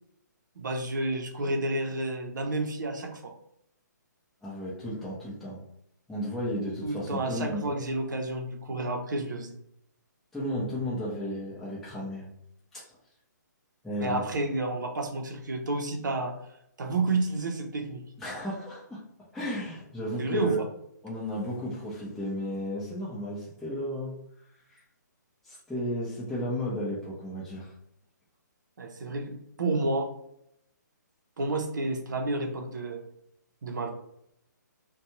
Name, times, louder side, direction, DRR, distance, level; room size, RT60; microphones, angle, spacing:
voice 1, 0.6-3.3 6.8-9.5 14.0-16.4 16.8-18.0 20.2-20.6 28.8-30.1 31.4-33.0 33.6-33.9, right 2 dB, 70° right, 3 dB, 0.7 m, -30 dB
voice 2, 4.4-5.6 6.1-7.8 10.3-12.3 12.7-12.8 13.8-14.3 18.2-19.0 19.3-20.6 21.0-24.2 24.7-24.8 25.4-27.7, equal, ahead, -9 dB, 0.6 m, -33 dB
2.5 x 2.2 x 2.9 m, 0.75 s
hypercardioid pair, 140°, 10 cm